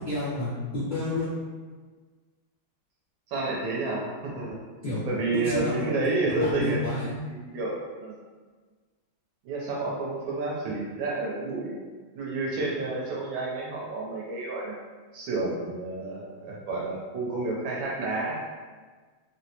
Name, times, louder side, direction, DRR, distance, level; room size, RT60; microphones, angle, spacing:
voice 1, 0.0-1.3 4.8-5.0 5.3-5.9 6.2-7.1, left 2 dB, 70° left, -12 dB, 0.4 m, -30 dB
voice 2, 3.3-4.6 5.1-6.8 7.2-8.2 9.4-11.8 12.1-14.8 15.1-18.4, right 2 dB, 75° right, -4 dB, 1.5 m, -30 dB
3.9 x 2.1 x 2.8 m, 1.4 s
omnidirectional pair, 2.3 m